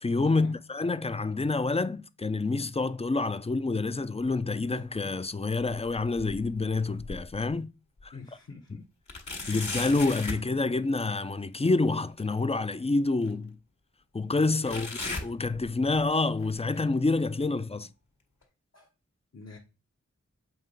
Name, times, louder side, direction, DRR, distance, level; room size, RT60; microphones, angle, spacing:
voice 1, 0.0-7.7 8.0-8.1 9.5-13.6 14.1-14.9 15.2-17.9, left 3 dB, 20° left, 0.4 m, -27 dB
sound 1, 4.3-5.2 5.6-7.5 8.0-8.1 9.1-10.5 12.2-12.3 13.2-13.3 14.7-16.0 16.4-16.8 17.4-17.5 18.4-18.5, left 2 dB, 75° left, 1.7 m, -38 dB
voice 2, 8.1-8.9 9.4-9.7 14.6-14.9 17.8-17.9 18.7-18.9 19.3-19.6, left 4 dB, 55° left, 1.1 m, -46 dB
7.7 x 3.0 x 5.3 m
wide cardioid pair, 45°, 30 cm